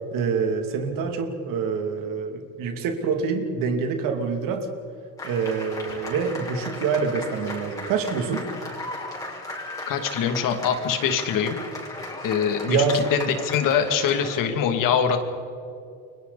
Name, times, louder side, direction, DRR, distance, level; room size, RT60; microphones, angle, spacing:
voice 1, 0.1-4.7 5.2-8.5 12.7-13.0, right 5 dB, 75° right, 5 dB, 2.9 m, -26 dB
sound 1, 5.2-14.5, left 2 dB, 10° left, 5.7 m, -36 dB
voice 2, 9.9-11.6 12.2-15.2, left 7 dB, 75° left, 6 dB, 2.6 m, -23 dB
29.5 x 24.0 x 4.2 m, 2.5 s
cardioid pair, 135°, 33 cm